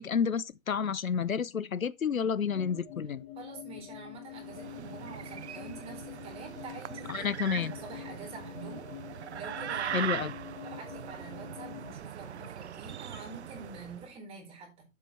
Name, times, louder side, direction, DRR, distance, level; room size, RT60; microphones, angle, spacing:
voice 1, 0.0-3.2 7.1-7.7 9.9-10.3, left 7 dB, 80° left, 0.8 m, -30 dB
sound 1, 2.5-11.9, left 13 dB, 25° left, 1.3 m, -46 dB
voice 2, 3.3-10.3 10.6-14.7, right 4 dB, 15° right, 4.7 m, -47 dB
sound 2, 4.3-14.1, right 9 dB, 55° right, 0.5 m, -40 dB
11.5 x 8.3 x 3.2 m
figure-of-eight pair, 140°, 40 cm